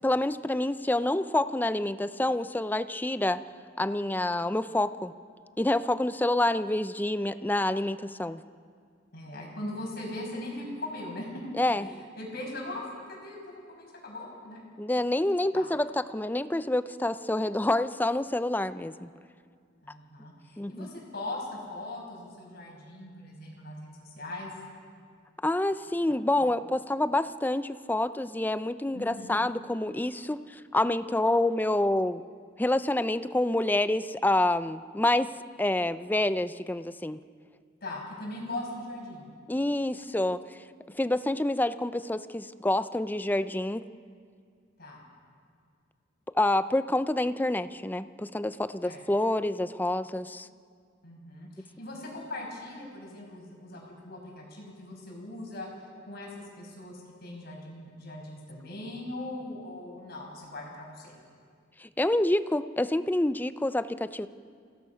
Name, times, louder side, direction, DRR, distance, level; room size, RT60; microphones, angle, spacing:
voice 1, 0.0-3.4 3.8-5.1 5.6-8.4 11.6-11.9 14.8-19.1 20.6-20.9 25.4-32.2 32.6-35.3 35.6-37.2 39.5-40.6 40.9-43.8 46.3-50.5 61.8-64.3, left 1 dB, 10° left, 13 dB, 0.5 m, -27 dB
voice 2, 9.1-11.4 11.8-13.4 13.7-14.6 15.5-15.7 19.8-24.5 28.9-29.4 37.8-39.3 44.8-45.0 48.8-49.1 51.0-55.7 56.1-61.1, left 1 dB, 55° left, -1 dB, 5.7 m, -40 dB
27.5 x 17.5 x 5.7 m, 2.1 s
head